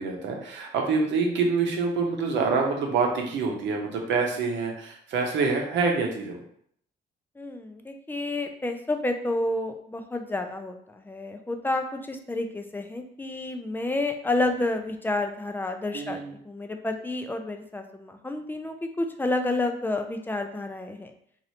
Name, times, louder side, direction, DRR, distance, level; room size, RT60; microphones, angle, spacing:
voice 1, 0.0-6.4 15.9-16.4, right 4 dB, 75° right, 1 dB, 0.8 m, -26 dB
voice 2, 7.4-21.1, left 2 dB, 10° left, 5 dB, 0.3 m, -30 dB
3.1 x 2.6 x 2.7 m, 0.65 s
cardioid pair, 110°, 19 cm